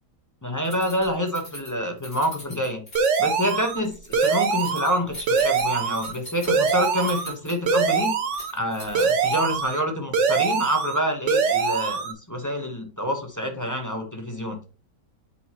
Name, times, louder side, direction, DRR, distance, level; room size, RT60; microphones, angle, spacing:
voice 1, 0.4-2.8 3.2-8.2 8.5-14.6, equal, 15° left, 4 dB, 0.9 m, -27 dB
Keys jangling, 0.6-9.7, equal, 45° left, 4.5 m, -41 dB
sound 1, 3.0-3.8 4.1-5.0 5.3-6.1 6.5-7.3 7.7-8.5 9.0-9.8 10.1-11.0 11.3-12.1, right 5 dB, 55° right, 1.2 m, -23 dB
7.7 x 5.7 x 2.9 m, 0.35 s
omnidirectional pair, 1.6 m